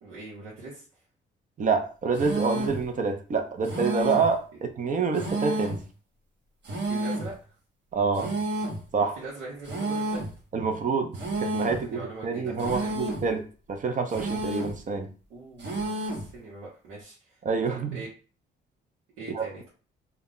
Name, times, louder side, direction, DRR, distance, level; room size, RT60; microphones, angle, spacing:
voice 1, 0.0-0.8 5.1-5.3 6.7-7.3 9.0-10.3 11.7-13.0 15.3-17.4 17.6-18.1 19.2-19.7, right 2 dB, 90° right, -7 dB, 0.9 m, -42 dB
voice 2, 1.6-5.8 7.9-8.3 8.9-9.1 10.5-11.1 11.4-15.1 17.4-18.0 19.3-19.5, right 4 dB, 40° right, 5 dB, 0.6 m, -27 dB
sound 1, 2.1-2.8 3.6-4.4 5.1-5.9 6.6-7.3 8.1-8.9 9.6-10.4 11.1-11.9 12.6-13.3 14.1-14.8 15.6-16.3, right 1 dB, 60° right, 1.1 m, -31 dB
2.3 x 2.1 x 3.7 m, 0.38 s
cardioid pair, 90°, 20 cm